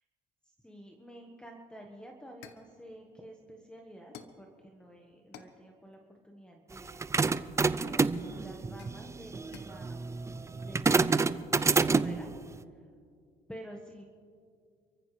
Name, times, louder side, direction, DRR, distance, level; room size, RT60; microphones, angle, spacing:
voice 1, 0.6-7.0 7.8-8.1 8.4-10.1 10.5-11.3 11.8-12.3 13.5-14.0, equal, 5° left, 1 dB, 1.4 m, -49 dB
sound 1, 1.7-1.9 2.4-2.8 4.1-4.5 5.3-5.6 7.2-7.8 8.8-9.8 10.9-11.2, left 7 dB, 80° left, 1.2 m, -51 dB
sound 2, 6.8-12.3, right 4 dB, 15° right, 0.5 m, -28 dB
29.5 x 14.5 x 3.3 m, 2.2 s
cardioid pair, 110°, 17 cm